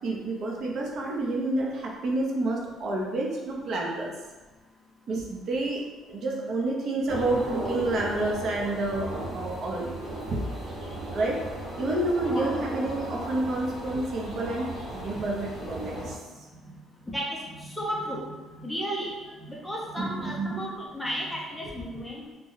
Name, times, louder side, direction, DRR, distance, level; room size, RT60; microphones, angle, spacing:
voice 1, 0.0-4.1 5.1-10.0 10.3-10.4 11.1-14.7 15.0-16.2 20.0-20.6, right 2 dB, 40° right, -2 dB, 0.6 m, -29 dB
sound 1, 7.1-16.1, right 1 dB, 15° right, 1.0 m, -36 dB
voice 2, 17.1-18.3 18.6-19.1 19.5-22.2, equal, 5° left, -3 dB, 0.5 m, -33 dB
2.6 x 2.1 x 3.7 m, 1.3 s
cardioid pair, 175°, 0 cm